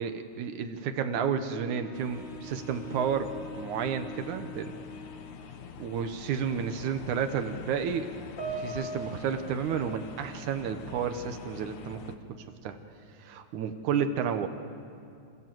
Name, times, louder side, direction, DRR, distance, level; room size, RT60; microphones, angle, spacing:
voice 1, 0.0-3.3 3.6-4.7 5.8-8.1 8.5-12.0 12.6-12.8 13.2-14.5, right 7 dB, 80° right, 7 dB, 1.7 m, -31 dB
Wind instrument woodwind instrument, 1.5-5.6, left 2 dB, 15° right, 3.2 m, -45 dB
sound 1, 1.9-12.2, left 7 dB, 70° left, 1.8 m, -45 dB
Piano, 8.4-11.0 11.3-11.6 12.4-12.5, right 3 dB, 20° left, 3.8 m, -41 dB
29.0 x 26.5 x 7.8 m, 2.4 s
omnidirectional pair, 5.3 m